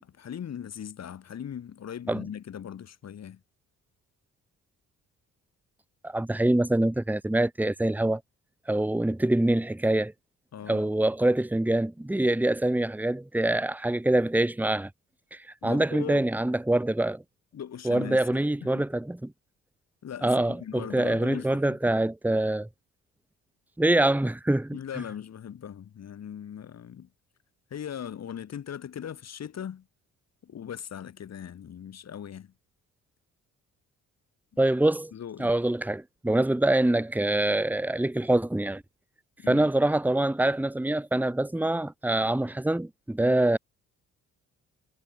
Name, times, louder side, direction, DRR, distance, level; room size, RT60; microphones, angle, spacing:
voice 1, 0.0-3.4 10.5-10.9 15.6-16.2 17.5-18.9 20.0-21.8 24.7-27.1 27.7-29.8 30.4-32.5 35.1-35.5 39.4-39.7, left 9 dB, 60° left, 6.9 m, -39 dB
voice 2, 6.0-8.2 8.7-10.1 10.7-14.9 15.3-17.2 17.8-19.3 20.2-22.7 23.8-24.8 34.6-35.1 35.4-38.8 39.5-43.6, right 1 dB, 5° right, 1.7 m, -25 dB
cardioid pair, 90°, 30 cm